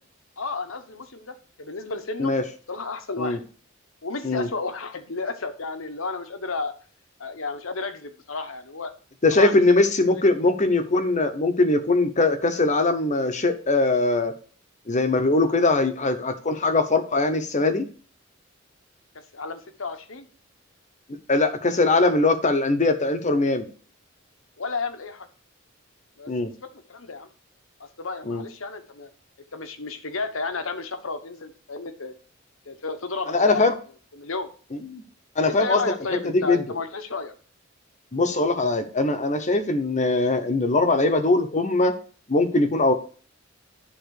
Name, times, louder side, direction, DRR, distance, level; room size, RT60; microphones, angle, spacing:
voice 1, 0.4-2.3 2.7-3.4 4.0-6.7 7.2-8.9 9.3-9.6 10.1-10.2 19.1-20.3 24.6-25.3 26.2-26.3 26.6-27.3 27.8-29.1 29.5-32.1 32.6-33.6 34.1-34.5 35.4-37.3, left 4 dB, 75° left, 9 dB, 1.1 m, -32 dB
voice 2, 9.2-14.3 14.9-17.8 21.3-23.7 26.3-26.5 28.3-28.4 33.3-33.7 34.7-35.0 35.4-35.8 36.2-36.6 38.1-42.0 42.3-42.9, left 2 dB, 35° left, 8 dB, 1.0 m, -21 dB
10.5 x 3.8 x 6.5 m, 0.41 s
head